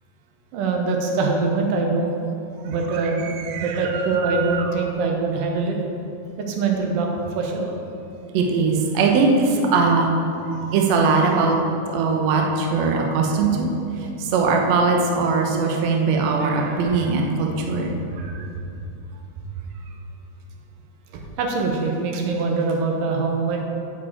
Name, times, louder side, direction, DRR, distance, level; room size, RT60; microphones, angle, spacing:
voice 1, 0.5-2.1 2.6-3.3 3.6-5.8 6.4-7.1 7.4-7.7 21.1-23.6, right 4 dB, 90° right, 1 dB, 2.6 m, -23 dB
voice 2, 3.0-4.6 8.3-11.6 11.9-13.7 14.2-17.9 18.2-18.3, right 4 dB, 65° right, 1 dB, 1.9 m, -21 dB
9.0 x 4.9 x 7.4 m, 2.6 s
omnidirectional pair, 3.7 m